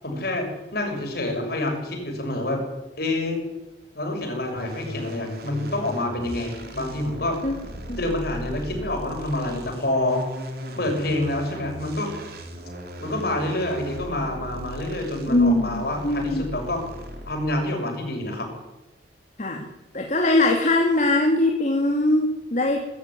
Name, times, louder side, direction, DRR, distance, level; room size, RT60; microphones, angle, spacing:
voice 1, 0.0-2.6 3.0-3.4 3.9-7.4 8.0-10.2 10.8-12.1 13.0-16.8 17.3-18.5, left 1 dB, 55° left, 3 dB, 6.7 m, -27 dB
sound 1, 4.6-17.5, equal, 55° right, 4.0 m, -37 dB
voice 2, 15.3-16.4 19.4-19.7 19.9-22.8, left 2 dB, 40° left, 2 dB, 2.5 m, -21 dB
22.5 x 13.5 x 9.9 m, 0.98 s
head